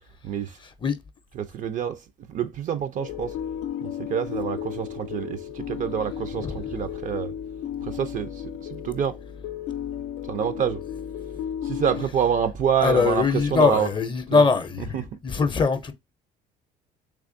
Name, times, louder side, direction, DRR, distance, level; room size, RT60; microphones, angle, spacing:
voice 1, 0.2-0.6 1.3-3.4 3.8-7.3 7.8-9.2 10.2-10.8 11.6-14.0 14.3-14.5 14.8-15.2, right 8 dB, 50° right, 0.4 m, -27 dB
sound 1, 3.0-12.1, left 10 dB, 90° left, 0.5 m, -34 dB
voice 2, 12.8-15.9, left 4 dB, 30° left, 0.5 m, -22 dB
3.4 x 3.2 x 2.5 m
cardioid pair, 110°, 17 cm